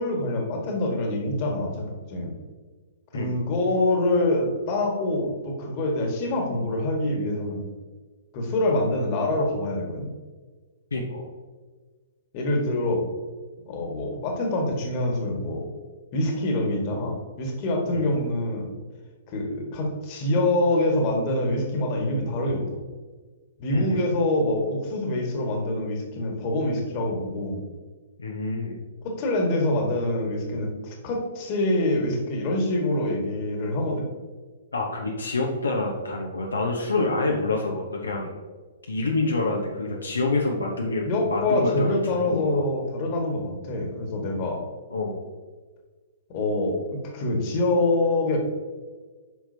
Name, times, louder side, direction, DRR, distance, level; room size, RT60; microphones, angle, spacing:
voice 1, 0.0-2.3 3.1-7.6 8.3-10.1 12.3-13.1 13.7-15.7 16.1-18.7 19.3-22.8 23.6-27.6 29.0-34.1 41.0-44.6 46.3-48.4, left 1 dB, 35° left, 1 dB, 1.7 m, -25 dB
voice 2, 10.9-11.3 17.9-18.1 23.7-24.1 28.2-28.8 34.7-38.3 38.8-42.7 44.9-45.2, left 2 dB, 75° left, 0 dB, 1.0 m, -27 dB
8.4 x 6.0 x 2.8 m, 1.4 s
figure-of-eight pair, 115°, 0 cm